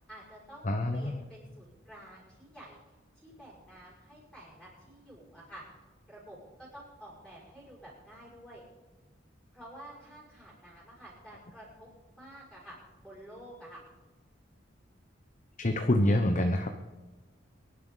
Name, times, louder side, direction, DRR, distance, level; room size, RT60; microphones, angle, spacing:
voice 1, 0.0-8.6 9.5-13.8, right 1 dB, ahead, -7 dB, 5.8 m, -50 dB
voice 2, 0.6-1.1 15.6-16.7, left 1 dB, 40° left, 5 dB, 0.9 m, -26 dB
23.5 x 11.5 x 4.0 m, 1.2 s
head